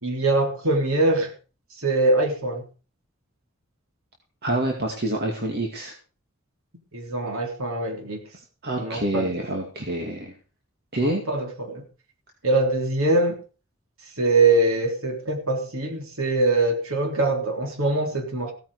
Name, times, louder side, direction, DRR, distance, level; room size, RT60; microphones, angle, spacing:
voice 1, 0.0-1.3 1.8-2.6 6.9-8.2 8.8-9.3 11.0-11.8 12.4-13.4 14.2-18.5, right 2 dB, 90° right, 2 dB, 3.6 m, -23 dB
voice 2, 4.4-5.9 8.6-10.3 10.9-11.2, right 1 dB, 50° right, 1 dB, 2.3 m, -27 dB
16.0 x 9.5 x 4.9 m, 0.36 s
head